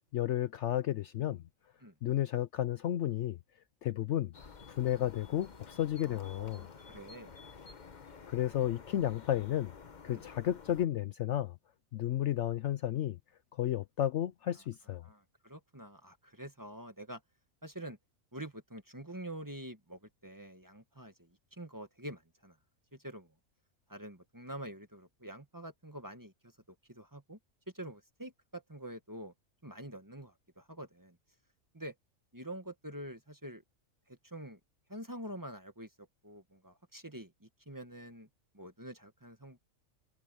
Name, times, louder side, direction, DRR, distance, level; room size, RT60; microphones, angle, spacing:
voice 1, 0.1-1.4 2.0-3.4 3.8-4.3 4.7-6.7 8.3-9.7 10.0-11.6 11.9-13.2 13.5-15.1, left 12 dB, 65° left, 0.8 m, -32 dB
sound 1, 4.3-10.9, left 5 dB, 35° left, 1.0 m, -52 dB
voice 2, 6.0-7.3 10.1-10.2 15.0-17.2 17.6-18.0 18.3-22.6 22.9-23.3 23.9-26.5 26.9-27.4 27.7-29.3 29.6-31.2 31.7-31.9 32.3-33.6 34.1-34.6 34.9-38.3 38.5-39.6, right 1 dB, 15° right, 1.5 m, -46 dB
omnidirectional pair, 1.4 m